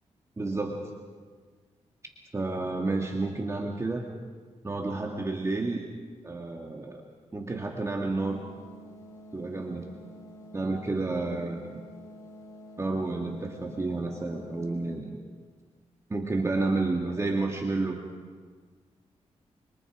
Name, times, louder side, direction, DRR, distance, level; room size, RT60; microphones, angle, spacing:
voice 1, 0.4-0.9 2.3-4.1 4.6-5.8 6.2-7.0 7.3-8.4 9.3-9.9 10.5-11.6 12.8-15.1 16.1-18.0, right 3 dB, 25° right, 1 dB, 2.1 m, -30 dB
sound 1, 8.2-15.0, left 1 dB, 30° left, 5.7 m, -48 dB
26.0 x 25.5 x 5.0 m, 1.5 s
wide cardioid pair, 105°, 12 cm